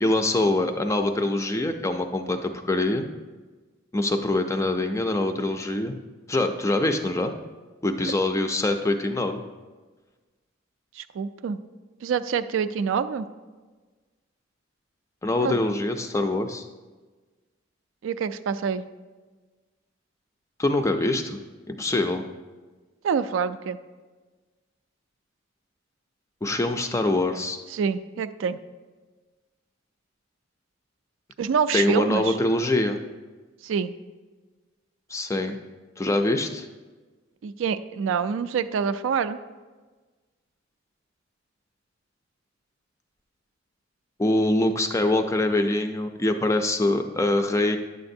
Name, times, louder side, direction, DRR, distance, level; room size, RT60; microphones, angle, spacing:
voice 1, 0.0-3.1 3.9-5.9 6.3-7.3 7.8-9.4 15.2-16.6 20.6-21.4 21.7-22.2 26.4-27.6 31.7-33.0 35.1-35.6 36.0-36.7 44.2-47.8, left 2 dB, 15° left, 6 dB, 0.3 m, -24 dB
voice 2, 11.0-11.6 12.0-13.3 15.4-15.6 18.0-18.8 23.0-23.8 27.7-28.6 31.4-32.4 33.6-33.9 37.4-39.4, right 6 dB, 75° right, 13 dB, 0.3 m, -26 dB
9.4 x 6.5 x 2.6 m, 1.3 s
head